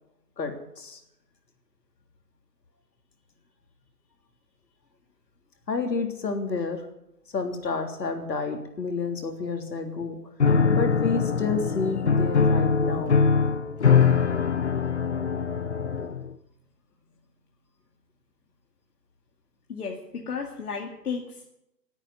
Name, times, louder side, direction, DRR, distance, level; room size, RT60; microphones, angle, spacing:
voice 1, 0.4-1.0 5.7-6.8 7.3-10.2 10.7-13.2, left 4 dB, 75° left, 4 dB, 3.4 m, -30 dB
Piano, 10.4-16.3, left 5 dB, 40° left, 0.8 m, -22 dB
voice 2, 19.7-21.5, left 5 dB, 60° left, 0 dB, 2.3 m, -34 dB
16.0 x 9.0 x 9.6 m, 0.82 s
hypercardioid pair, 175°, 50 cm